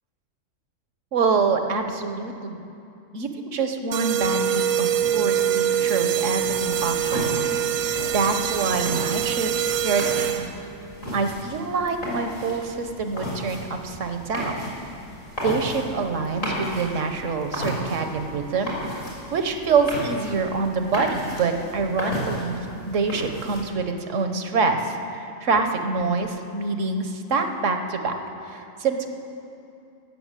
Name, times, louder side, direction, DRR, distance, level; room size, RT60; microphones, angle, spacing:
voice 1, 1.1-2.7 3.1-7.6 8.1-10.5 11.1-14.7 15.4-19.0 19.3-24.9 25.4-28.1 28.4-29.1, right 4 dB, 65° right, 6 dB, 1.4 m, -26 dB
sound 1, 3.9-10.7, right 9 dB, 90° right, 1.1 m, -24 dB
sound 2, 6.4-23.6, equal, 70° left, 4.4 m, -34 dB
16.5 x 6.9 x 8.3 m, 2.7 s
omnidirectional pair, 1.4 m